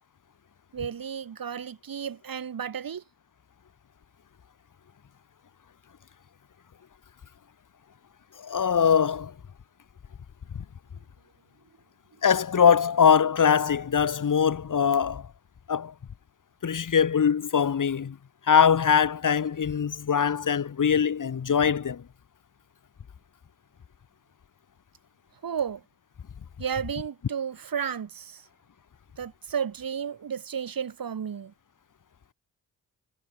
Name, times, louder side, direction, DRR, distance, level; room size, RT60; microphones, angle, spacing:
voice 1, 0.7-3.0 25.4-25.8 26.6-28.5 29.2-31.5, right 7 dB, 60° right, 5.0 m, -33 dB
voice 2, 8.4-9.3 12.2-15.3 15.7-15.9 16.6-18.2 18.5-22.0, left 7 dB, 55° left, 2.3 m, -22 dB
cardioid pair, 55°, 38 cm